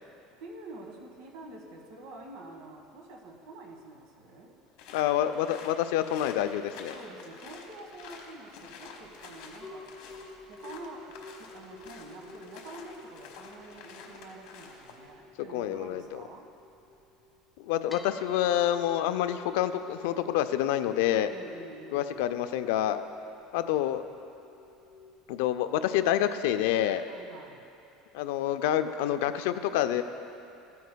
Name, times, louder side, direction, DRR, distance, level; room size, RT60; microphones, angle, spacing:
voice 1, 0.4-4.5 6.9-9.9 10.5-16.5 21.3-22.2 27.1-27.7, right 2 dB, 65° right, 0 dB, 1.5 m, -47 dB
sound 1, 4.8-15.1, left 5 dB, 60° left, 1.0 m, -49 dB
voice 2, 4.9-6.9 15.5-16.2 17.6-21.3 21.9-23.0 23.5-24.0 25.3-27.0 28.1-30.0, left 11 dB, 75° left, 10 dB, 0.4 m, -27 dB
sound 2, 9.6-25.5, left 2 dB, 5° left, 0.5 m, -49 dB
14.5 x 9.3 x 2.3 m, 2.8 s
cardioid pair, 175°, 0 cm